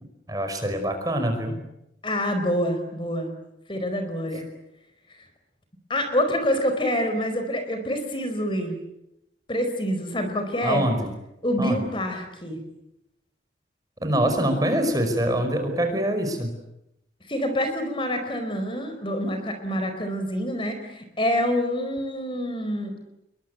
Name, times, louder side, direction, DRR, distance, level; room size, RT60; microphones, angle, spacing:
voice 1, 0.3-1.6 10.6-11.1 11.6-11.8 14.0-16.5, right 1 dB, 20° right, 6 dB, 5.2 m, -24 dB
voice 2, 2.0-3.3 3.7-4.5 5.9-8.8 9.5-10.8 11.4-12.6 17.3-23.1, equal, 30° left, 7 dB, 4.6 m, -26 dB
27.0 x 23.0 x 9.4 m, 0.86 s
head